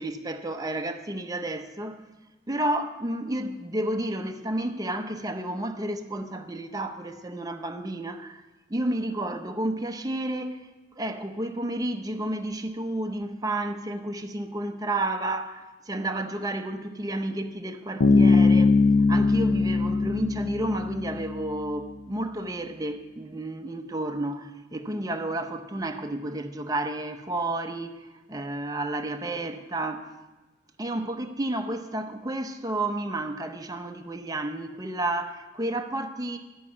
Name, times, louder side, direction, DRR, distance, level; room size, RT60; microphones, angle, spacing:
voice 1, 0.0-2.0 2.5-8.4 8.7-10.6 11.0-18.8 19.1-28.0 28.3-30.1 30.8-36.4, right 1 dB, 20° right, 0.6 m, -31 dB
Bass guitar, 18.0-21.6, left 3 dB, 75° left, 0.6 m, -21 dB
11.5 x 5.5 x 8.4 m
head